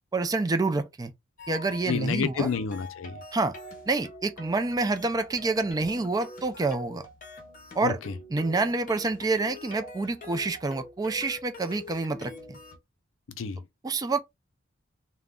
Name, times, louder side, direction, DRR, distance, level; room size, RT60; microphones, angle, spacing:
voice 1, 0.1-1.1 1.5-2.5 3.3-3.5 3.9-7.1 7.7-8.0 8.3-12.6 13.8-14.2, right 3 dB, 20° right, 0.3 m, -27 dB
sound 1, 1.4-12.8, left 2 dB, 45° left, 0.8 m, -45 dB
voice 2, 1.8-3.2 7.8-8.2 13.3-13.7, left 5 dB, 75° left, 0.5 m, -30 dB
2.4 x 2.1 x 3.5 m
head